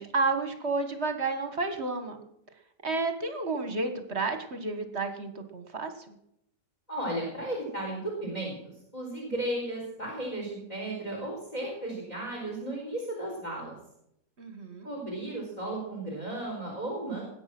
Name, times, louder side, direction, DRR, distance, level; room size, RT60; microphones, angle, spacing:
voice 1, 0.0-2.2 2.8-6.1 14.4-14.9, right 3 dB, 40° right, 7 dB, 1.8 m, -31 dB
voice 2, 6.9-13.8 14.8-17.2, right 1 dB, 20° left, 0 dB, 4.3 m, -35 dB
20.5 x 9.2 x 6.1 m, 0.76 s
omnidirectional pair, 1.9 m